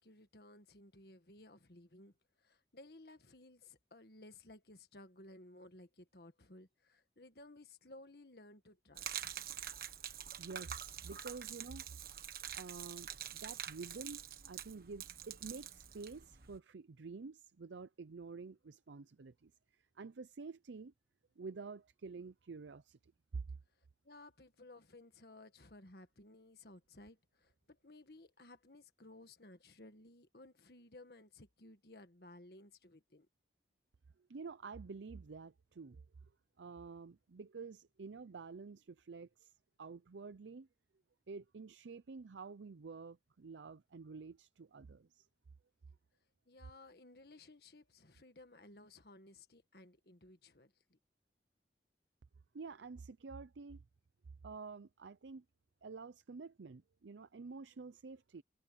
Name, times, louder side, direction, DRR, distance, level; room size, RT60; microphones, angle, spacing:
voice 1, 0.0-2.1 2.4-9.3 24.0-33.3 46.5-51.0, left 2 dB, 60° left, 1.6 m, -58 dB
Gurgling / Liquid, 8.9-16.6, right 9 dB, 55° right, 1.5 m, -46 dB
voice 2, 10.4-12.1 12.5-20.9 21.4-23.4 34.3-36.1 36.6-39.5 39.8-40.7 41.3-45.3 52.5-53.8 54.4-55.4 55.8-58.4, right 4 dB, 90° right, 0.5 m, -49 dB
head